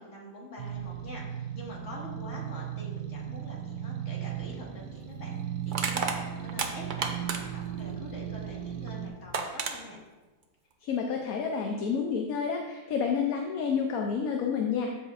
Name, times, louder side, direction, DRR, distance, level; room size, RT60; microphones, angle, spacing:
voice 1, 0.0-10.0, left 1 dB, 45° left, -3 dB, 2.1 m, -45 dB
sound 1, 0.6-9.1, right 10 dB, 80° right, 1.2 m, -37 dB
Crushing, 4.3-4.5 5.7-7.7 8.9-9.0 9.3-9.8, right 5 dB, 55° right, 0.5 m, -31 dB
voice 2, 10.8-14.9, left 6 dB, 65° left, 2 dB, 1.1 m, -29 dB
14.0 x 5.5 x 2.5 m, 1.2 s
omnidirectional pair, 1.7 m